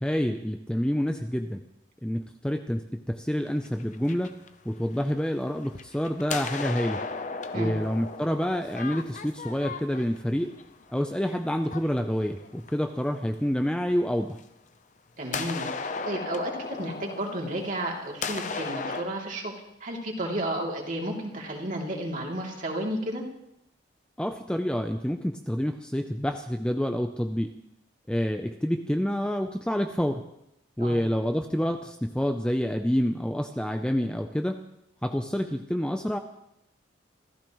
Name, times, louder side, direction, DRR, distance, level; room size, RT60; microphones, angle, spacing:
voice 1, 0.0-1.6 2.0-4.4 4.7-7.0 7.5-10.5 10.9-14.4 24.2-27.6 28.1-30.2 30.8-34.6 35.0-36.2, equal, 5° left, 6 dB, 0.5 m, -28 dB
sound 1, 3.5-5.2 5.6-12.9 14.4-14.5 15.3-19.0, left 4 dB, 40° left, 0.7 m, -36 dB
voice 2, 15.2-19.5 19.8-23.2 30.8-31.0, right 1 dB, 45° right, 0 dB, 2.9 m, -32 dB
27.0 x 14.0 x 3.1 m, 0.79 s
head